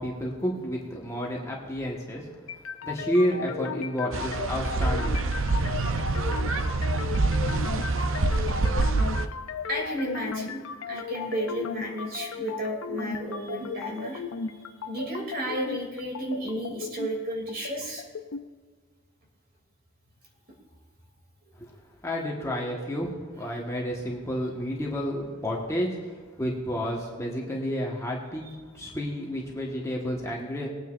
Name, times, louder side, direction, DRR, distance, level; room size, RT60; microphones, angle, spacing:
voice 1, 0.0-5.2 22.0-23.1 23.4-30.7, equal, 15° left, -3 dB, 1.4 m, -30 dB
sound 1, 2.5-18.5, left 5 dB, 75° left, 0.6 m, -36 dB
sound 2, 4.1-9.3, right 3 dB, 65° right, 0.6 m, -26 dB
voice 2, 9.7-10.6 10.9-18.0 21.4-21.7 28.4-28.6, equal, 45° right, -1 dB, 2.9 m, -33 dB
20.5 x 9.3 x 2.6 m, 1.5 s
head